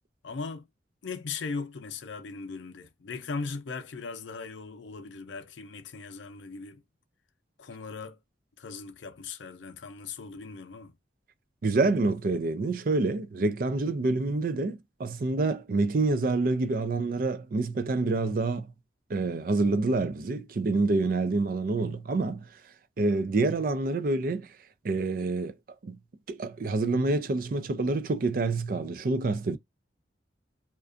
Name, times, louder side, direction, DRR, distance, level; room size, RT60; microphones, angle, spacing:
voice 1, 0.2-0.7 1.0-6.8 7.6-8.2 8.6-10.9, left 4 dB, 80° left, 0.5 m, -38 dB
voice 2, 11.6-18.7 19.1-22.5 23.0-24.5 24.8-25.6 25.8-26.0 26.3-29.6, right 3 dB, 50° right, 0.4 m, -27 dB
2.5 x 2.2 x 2.4 m
head